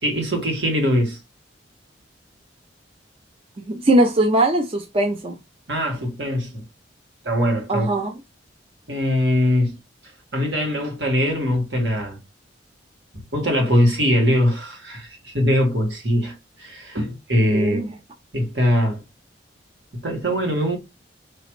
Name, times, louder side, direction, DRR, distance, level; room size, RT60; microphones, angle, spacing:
voice 1, 0.0-1.2 5.7-6.6 7.2-7.9 8.9-9.7 10.3-12.2 13.3-17.8 18.3-19.0 19.9-20.8, equal, 70° right, 1.8 m, -21 dB
voice 2, 3.7-5.4 7.7-8.1 17.5-17.9, right 1 dB, 30° right, 0.5 m, -20 dB
5.0 x 3.0 x 3.1 m
head